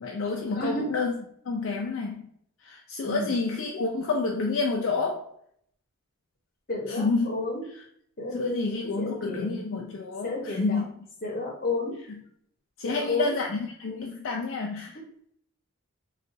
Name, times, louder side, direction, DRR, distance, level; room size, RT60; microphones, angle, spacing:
voice 1, 0.0-1.1 1.5-2.3 2.6-5.2 6.9-7.3 7.7-7.8 8.3-10.9 12.1-12.2 12.8-15.0, left 4 dB, 60° left, 0 dB, 0.4 m, -29 dB
voice 2, 0.6-0.9 3.0-3.3 6.7-7.6 8.2-8.7 9.0-9.6 10.2-10.8 11.2-11.9 12.8-13.3, left 2 dB, 40° left, -1 dB, 0.8 m, -31 dB
3.9 x 2.3 x 2.5 m, 0.66 s
head